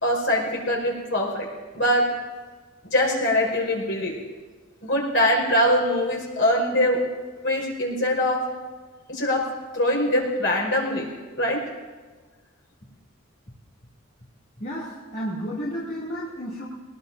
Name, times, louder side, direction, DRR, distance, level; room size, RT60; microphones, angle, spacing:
voice 1, 0.0-1.4 1.7-2.1 2.8-4.1 4.8-7.0 7.4-8.4 9.1-9.4 9.7-11.1 11.4-11.6, left 1 dB, 65° left, -1 dB, 5.0 m, -22 dB
voice 2, 14.6-16.7, equal, 45° left, -8 dB, 2.6 m, -32 dB
23.0 x 20.0 x 2.6 m, 1.4 s
head